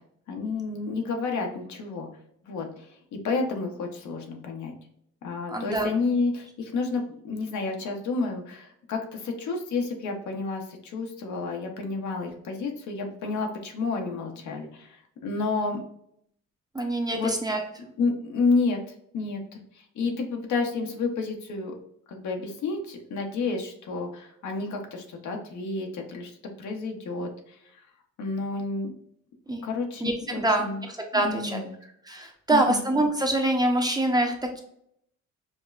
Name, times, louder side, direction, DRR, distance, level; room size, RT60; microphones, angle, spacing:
voice 1, 0.3-2.1 2.5-3.0 3.2-4.7 5.2-15.8 17.1-17.3 17.8-18.8 19.1-21.7 22.1-26.3 26.6-27.8 28.2-28.9 29.6-30.8 31.1-31.7 32.5-32.8, left 4 dB, 75° left, 3 dB, 0.9 m, -30 dB
voice 2, 5.5-5.9 16.7-17.6 29.5-29.7 30.0-31.6 32.1-34.6, right 1 dB, 15° right, 2 dB, 0.7 m, -25 dB
5.1 x 2.2 x 2.4 m, 0.71 s
cardioid pair, 90°, 30 cm